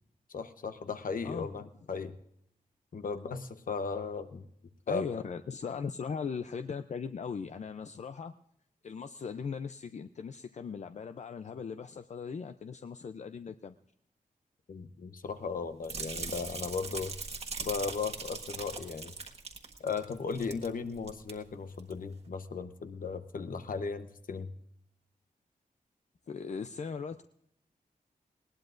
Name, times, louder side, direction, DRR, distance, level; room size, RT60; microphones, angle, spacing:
voice 1, 0.3-2.2 2.9-4.4 4.9-5.2 14.7-17.1 17.6-19.1 19.8-24.5, left 5 dB, 65° left, 10 dB, 1.0 m, -36 dB
voice 2, 4.9-8.3 8.8-13.7 26.3-27.2, left 6 dB, 50° left, 9 dB, 0.5 m, -39 dB
sound 1, 15.8-20.7 21.0-21.3 21.8-21.9, right 4 dB, 45° right, 1.5 m, -40 dB
20.0 x 18.5 x 2.5 m, 0.75 s
wide cardioid pair, 155°, 15 cm